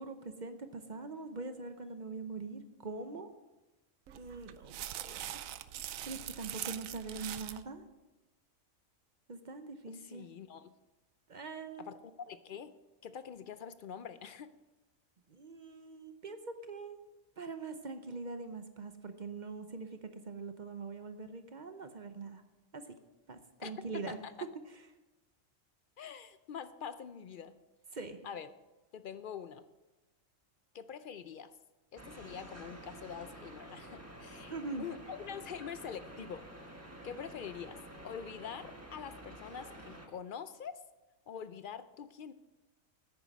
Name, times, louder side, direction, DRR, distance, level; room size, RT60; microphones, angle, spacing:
voice 1, 0.0-3.3 4.1-5.4 5.8-7.8 9.3-10.3 11.3-11.9 15.3-17.0 17.4-22.4 22.7-22.9 23.3-24.2 24.7-24.8 27.9-28.2 34.4-34.9, right 3 dB, 45° right, 8 dB, 0.7 m, -43 dB
sound 1, 4.1-7.6, right 11 dB, 85° right, 1.0 m, -43 dB
voice 2, 9.9-10.7 11.8-12.0 12.3-12.7 13.0-14.5 23.6-24.3 26.0-27.5 28.2-28.5 28.9-29.6 30.7-31.5 31.9-36.5 37.0-37.8 38.0-40.8 41.3-42.3, left 7 dB, 65° left, 12 dB, 0.5 m, -45 dB
sound 2, 32.0-40.1, right 1 dB, 10° right, 1.3 m, -50 dB
10.0 x 9.2 x 6.1 m, 1.1 s
omnidirectional pair, 1.4 m